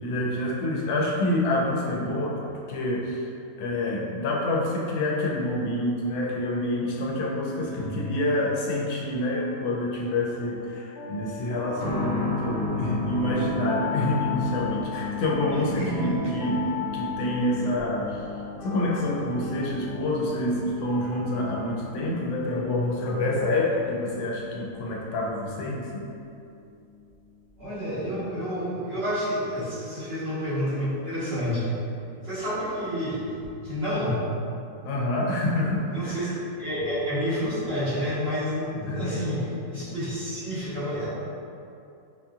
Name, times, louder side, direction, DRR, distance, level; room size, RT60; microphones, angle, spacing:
voice 1, 0.0-3.3 3.6-16.6 16.9-18.3 18.6-26.0 34.8-36.3 38.9-39.3, left 1 dB, 90° left, -3 dB, 1.2 m, -27 dB
sound 1, 6.6-24.0, left 5 dB, 45° left, 0.8 m, -40 dB
voice 2, 7.6-7.9 15.5-16.3 16.6-16.7 27.6-31.7 32.2-34.2 35.9-41.1, equal, 45° right, -12 dB, 1.4 m, -29 dB
sound 2, 11.8-26.2 26.5-26.6 27.6-27.7, left 4 dB, 65° left, 1.1 m, -35 dB
4.9 x 2.8 x 2.3 m, 2.6 s
omnidirectional pair, 1.6 m